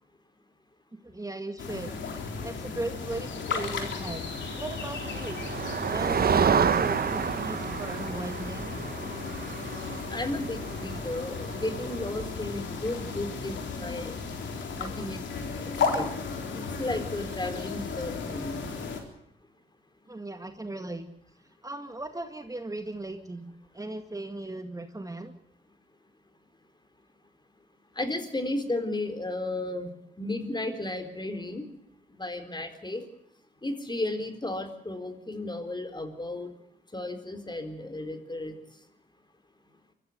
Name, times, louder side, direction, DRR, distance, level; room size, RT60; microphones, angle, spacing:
voice 1, 1.0-1.9 2.2-4.3 4.6-5.4 5.9-8.7 20.1-21.0 21.6-25.3, right 2 dB, 20° right, 6 dB, 2.1 m, -37 dB
sound 1, 1.6-19.0, left 4 dB, 80° left, 3.8 m, -35 dB
Motor vehicle (road), 4.3-12.1, right 7 dB, 55° right, 1.1 m, -30 dB
voice 2, 10.1-14.1 14.8-15.2 15.7-16.1 16.5-18.6 28.0-29.9 30.2-31.7 32.2-33.0 33.6-36.5 36.9-38.5, left 2 dB, 25° left, 8 dB, 4.1 m, -34 dB
24.0 x 14.5 x 8.0 m, 0.77 s
cardioid pair, 60°, 19 cm